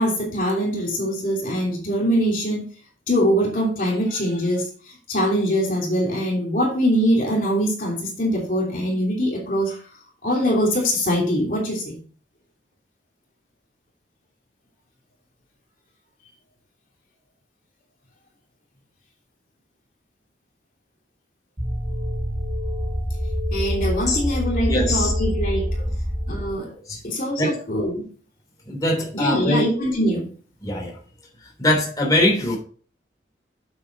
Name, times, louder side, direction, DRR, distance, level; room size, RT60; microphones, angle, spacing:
voice 1, 0.0-2.6 3.1-9.8 10.2-12.0 23.5-25.6 26.3-26.7 27.0-28.0 29.1-30.3, equal, 50° left, -2 dB, 3.0 m, -23 dB
sound 1, 21.6-26.6, equal, 30° right, 3.8 m, -25 dB
voice 2, 24.7-25.1 26.9-27.0 27.4-27.5 28.6-29.6 30.6-31.0 31.4-32.6, left 1 dB, 20° left, -1 dB, 3.2 m, -22 dB
8.2 x 7.9 x 4.1 m, 0.42 s
head